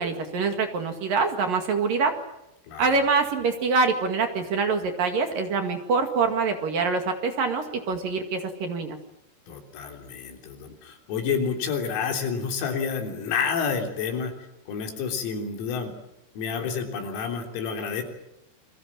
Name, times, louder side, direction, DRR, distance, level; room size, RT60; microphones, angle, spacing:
voice 1, 0.0-2.1 2.8-9.0, right 4 dB, 55° right, 6 dB, 3.1 m, -25 dB
voice 2, 2.7-3.0 9.5-14.3 14.7-15.9 16.4-18.0, left 6 dB, 85° left, 3 dB, 6.2 m, -29 dB
29.0 x 22.5 x 7.4 m, 0.87 s
omnidirectional pair, 6.0 m